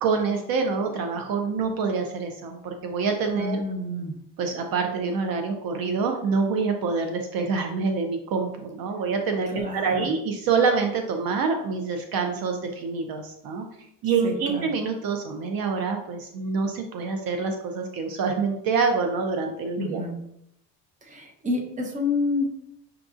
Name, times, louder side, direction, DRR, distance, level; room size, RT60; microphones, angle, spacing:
voice 1, 0.0-3.6 4.4-13.7 14.0-20.0, right 5 dB, 55° right, 4 dB, 0.6 m, -26 dB
voice 2, 3.3-4.2 9.5-10.1 14.2-14.7 19.8-20.2 21.0-22.5, left 2 dB, 20° right, 1 dB, 0.7 m, -29 dB
5.7 x 2.6 x 2.4 m, 0.77 s
cardioid pair, 120°, 42 cm